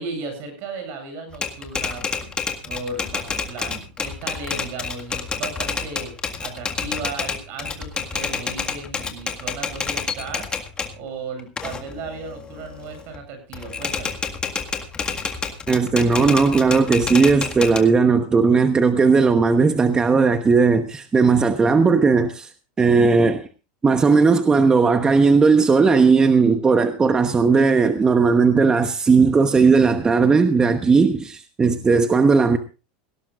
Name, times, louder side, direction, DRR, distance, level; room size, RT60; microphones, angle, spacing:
voice 1, 0.0-2.4 2.6-6.1 6.4-10.7 10.9-14.2, right 3 dB, 55° right, 8.0 m, -35 dB
Typewriter, 1.3-11.0 11.4-13.2 13.5-17.8, left 5 dB, 20° left, 1.8 m, -29 dB
voice 2, 15.7-22.5 22.8-23.5 23.8-32.6, right 4 dB, 15° right, 1.0 m, -17 dB
18.0 x 17.0 x 2.5 m
supercardioid pair, 130°, 5 cm